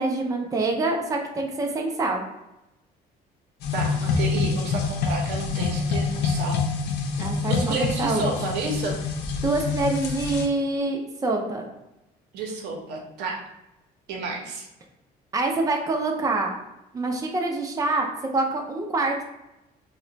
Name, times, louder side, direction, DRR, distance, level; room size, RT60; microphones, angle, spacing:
voice 1, 0.0-2.2 7.2-8.3 9.4-11.7 15.3-16.5 16.9-18.1 18.3-19.2, right 2 dB, 20° right, 2 dB, 0.4 m, -26 dB
sound 1, 3.6-10.5, left 5 dB, 80° left, 0.4 m, -26 dB
voice 2, 3.7-6.6 7.5-9.0 12.3-13.4 14.1-14.7, right 3 dB, 80° right, 0 dB, 0.7 m, -30 dB
2.4 x 2.1 x 3.8 m, 0.92 s
cardioid pair, 110°, 17 cm